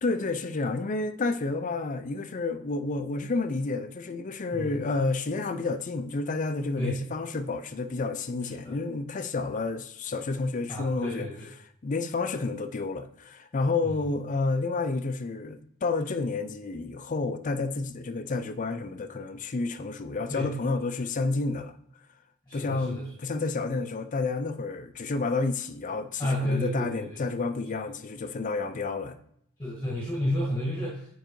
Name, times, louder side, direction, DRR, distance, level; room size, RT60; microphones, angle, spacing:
voice 1, 0.0-11.3 11.8-21.8 22.5-29.2, left 3 dB, 35° left, 0.4 m, -30 dB
voice 2, 10.7-11.5 20.3-20.5 22.5-23.0 26.2-27.2 29.6-31.1, left 1 dB, 20° left, 1.8 m, -31 dB
8.9 x 4.5 x 3.1 m
head